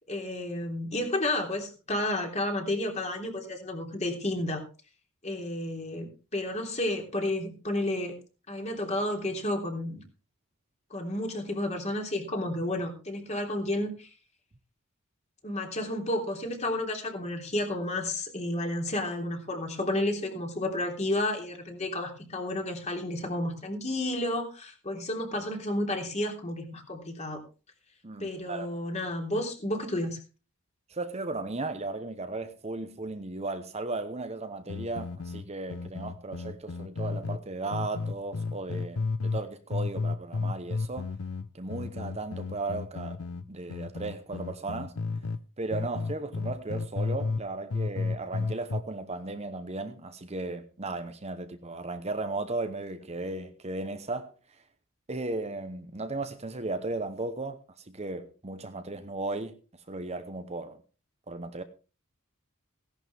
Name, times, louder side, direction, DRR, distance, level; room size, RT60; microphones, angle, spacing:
voice 1, 0.1-4.6 5.2-6.1 6.3-8.1 8.5-10.0 10.9-14.1 15.4-27.4 28.2-30.2, left 1 dB, 30° left, 3.3 m, -31 dB
voice 2, 28.0-28.7 30.9-41.1 41.5-43.2 43.5-44.9 45.6-54.3 55.1-59.6 59.9-60.8 61.3-61.6, right 2 dB, 30° right, 0.9 m, -36 dB
sound 1, 34.7-37.4 37.7-39.4 39.7-45.4 45.7-47.4 47.7-48.8, left 4 dB, 85° left, 0.7 m, -32 dB
17.0 x 11.0 x 3.5 m
head